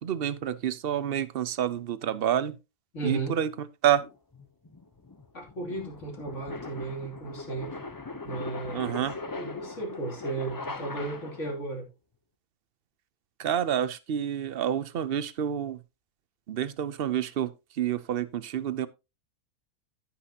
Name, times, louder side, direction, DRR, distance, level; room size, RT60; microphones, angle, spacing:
voice 1, 0.0-2.6 3.0-3.5 3.8-4.0 8.7-9.2 13.4-15.8 16.5-18.9, right 10 dB, 55° right, 0.7 m, -28 dB
voice 2, 2.9-3.4 5.3-7.8 8.2-9.0 9.4-11.8, right 3 dB, 55° left, 3.1 m, -35 dB
sound 1, 4.0-11.6, left 3 dB, 30° left, 0.4 m, -40 dB
15.5 x 5.9 x 2.8 m
omnidirectional pair, 1.5 m